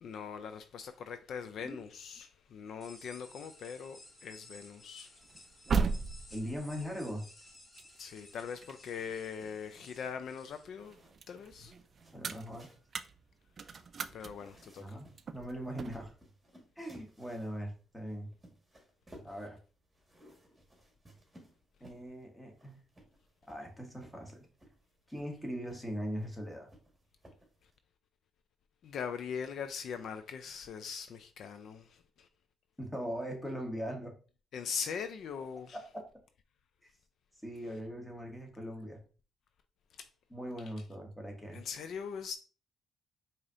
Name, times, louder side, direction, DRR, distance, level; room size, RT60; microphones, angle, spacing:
voice 1, 0.0-5.2 8.0-11.0 11.3-11.7 14.1-15.0 28.8-32.3 34.5-35.8 40.0-40.1 41.5-42.4, left 6 dB, 70° left, 0.3 m, -41 dB
sound 1, 2.8-10.7, left 1 dB, 25° left, 1.6 m, -56 dB
sound 2, 5.2-10.3 10.7-16.1, right 5 dB, 45° right, 0.3 m, -38 dB
voice 2, 6.3-7.3 12.1-12.7 14.8-16.1 16.8-18.3 19.2-19.6 21.8-22.7 23.5-24.5 25.1-26.7 32.8-34.1 37.4-39.0 40.3-41.6, equal, 5° left, 1.3 m, -40 dB
sound 3, 10.8-27.8, right 1 dB, 15° right, 1.5 m, -61 dB
4.7 x 2.8 x 2.5 m
cardioid pair, 90°, 0 cm